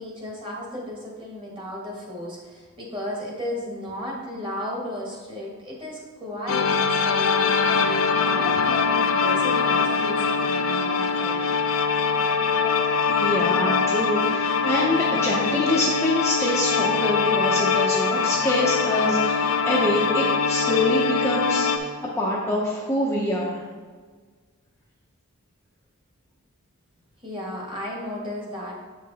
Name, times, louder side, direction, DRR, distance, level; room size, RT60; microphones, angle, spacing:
voice 1, 0.0-11.5 27.2-28.7, equal, 20° right, -3 dB, 1.6 m, -34 dB
sound 1, 6.5-21.8, left 5 dB, 65° left, 0.6 m, -23 dB
voice 2, 13.1-23.6, left 1 dB, 10° left, -5 dB, 0.7 m, -25 dB
7.8 x 4.8 x 4.0 m, 1.5 s
head